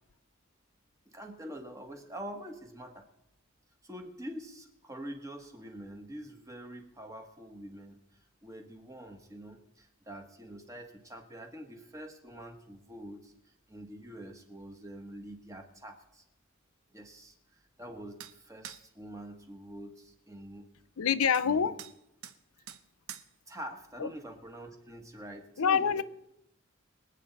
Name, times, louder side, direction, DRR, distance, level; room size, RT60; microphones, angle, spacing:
voice 1, 1.0-3.1 3.8-8.0 8.4-13.3 13.7-16.2 16.9-17.3 17.8-20.7 21.4-21.7 23.5-26.0, equal, 15° right, 1.5 m, -45 dB
sound 1, 18.2-18.4 18.6-18.8 21.3-21.5 21.8-22.0 22.2-22.4 22.7-22.8 23.1-23.3, right 9 dB, 85° right, 0.8 m, -45 dB
voice 2, 21.0-21.8 24.0-24.1 25.6-26.0, left 7 dB, 90° left, 0.6 m, -26 dB
24.5 x 8.4 x 4.1 m
head